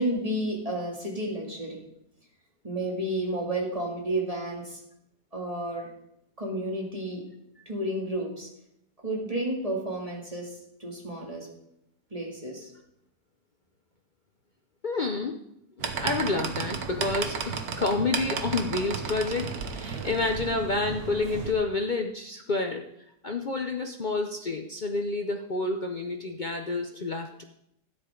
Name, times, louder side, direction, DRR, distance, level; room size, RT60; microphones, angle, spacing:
voice 1, 0.0-1.8 2.6-4.8 5.3-5.9 6.4-7.2 7.7-8.5 9.0-10.5 10.8-11.5 12.1-12.7, right 1 dB, 20° right, -2 dB, 2.6 m, -31 dB
voice 2, 14.8-15.4 15.8-22.9 23.2-27.4, left 3 dB, 75° left, 4 dB, 0.4 m, -29 dB
sound 1, 15.8-21.5, right 5 dB, 60° right, 1.5 m, -33 dB
13.0 x 11.0 x 3.8 m, 0.77 s
omnidirectional pair, 1.9 m